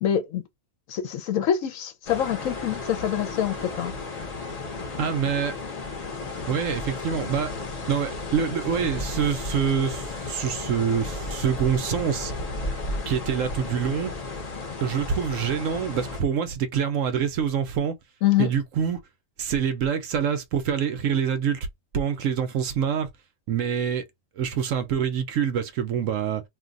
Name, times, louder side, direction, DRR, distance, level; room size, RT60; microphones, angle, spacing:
voice 1, 0.0-0.4 0.9-3.9 18.2-18.5, left 10 dB, 70° left, 1.0 m, -25 dB
sound 1, 2.1-16.2, left 3 dB, 35° left, 0.7 m, -34 dB
voice 2, 5.0-5.6 6.5-7.5 7.9-12.3 13.1-14.1 14.8-18.0 18.4-19.0 19.4-21.7 21.9-23.1 23.5-24.1 24.4-26.4, right 7 dB, 70° right, 0.9 m, -26 dB
2.6 x 2.2 x 3.8 m
omnidirectional pair, 1.5 m